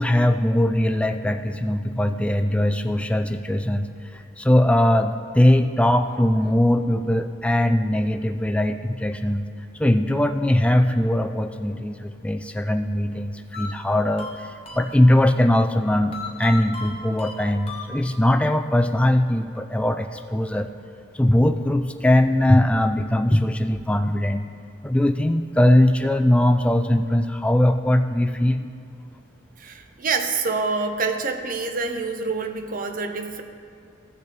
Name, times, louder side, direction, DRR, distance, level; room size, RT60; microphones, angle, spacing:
voice 1, 0.0-9.5 9.8-20.7 21.1-24.5 24.8-28.6, left 1 dB, 5° left, 7 dB, 0.3 m, -20 dB
sound 1, 13.5-15.4 16.1-18.4, left 4 dB, 30° left, 1.1 m, -37 dB
voice 2, 29.6-33.4, right 4 dB, 40° right, 6 dB, 0.7 m, -26 dB
16.0 x 6.8 x 3.4 m, 2.6 s
head